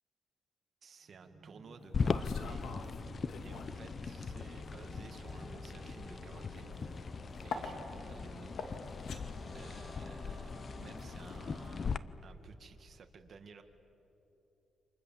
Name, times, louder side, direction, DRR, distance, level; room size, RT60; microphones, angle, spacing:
voice 1, 0.8-2.7 3.4-7.2 7.4-8.6 9.5-11.9 12.2-13.6, right 5 dB, 50° right, 6 dB, 2.0 m, -55 dB
sound 1, 1.0-11.8, right 2 dB, 15° right, 7.9 m, -54 dB
sound 2, 1.8-3.9 4.2-12.0, left 4 dB, 75° left, 2.4 m, -47 dB
sound 3, 1.9-12.0, left 5 dB, 40° left, 0.7 m, -39 dB
29.0 x 26.5 x 7.4 m, 3.0 s
cardioid pair, 115°, 0 cm